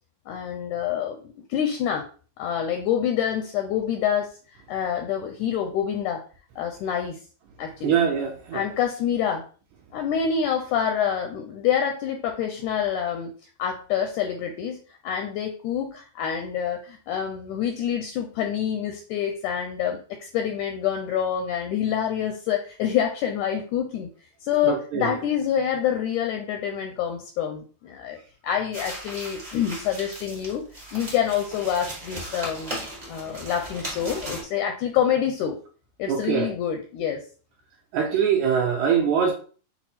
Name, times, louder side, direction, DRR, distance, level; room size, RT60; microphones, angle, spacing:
voice 1, 0.3-2.1 2.4-4.3 4.7-6.2 6.6-7.2 7.6-8.0 8.5-9.4 9.9-13.3 13.6-24.1 24.4-28.2 28.4-30.6 30.9-35.6 36.0-37.2, left 9 dB, 80° left, 1.8 m, -27 dB
voice 2, 7.8-8.6 24.6-25.1 36.1-36.5 37.9-39.3, right 7 dB, 80° right, 1.7 m, -23 dB
sound 1, 28.7-34.4, right 1 dB, 50° right, 0.4 m, -37 dB
6.0 x 2.0 x 4.2 m
omnidirectional pair, 3.8 m